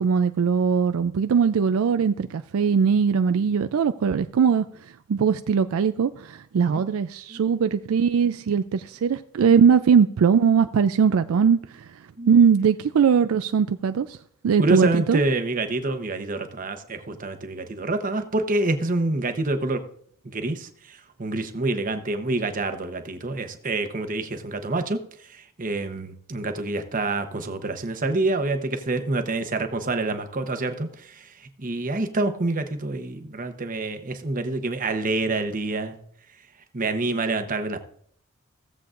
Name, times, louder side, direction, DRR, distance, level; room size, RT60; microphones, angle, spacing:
voice 1, 0.0-4.6 5.1-11.6 12.3-14.2 14.4-15.2, right 6 dB, 75° right, 10 dB, 0.4 m, -20 dB
voice 2, 14.6-19.8 20.3-36.0 36.7-37.8, right 2 dB, 40° right, 8 dB, 0.9 m, -27 dB
16.5 x 7.6 x 2.5 m, 0.63 s
head